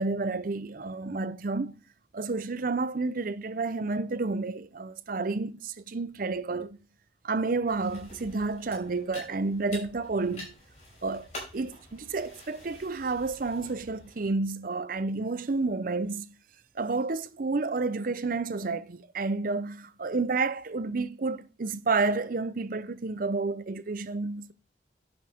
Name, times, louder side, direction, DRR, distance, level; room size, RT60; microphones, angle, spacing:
voice 1, 0.0-1.7 2.1-6.8 7.2-10.5 11.0-11.3 11.5-16.3 16.8-24.5, right 3 dB, 50° right, 0.6 m, -30 dB
sound 1, 7.7-14.2, left 1 dB, 40° left, 5.1 m, -47 dB
11.0 x 6.6 x 3.5 m
head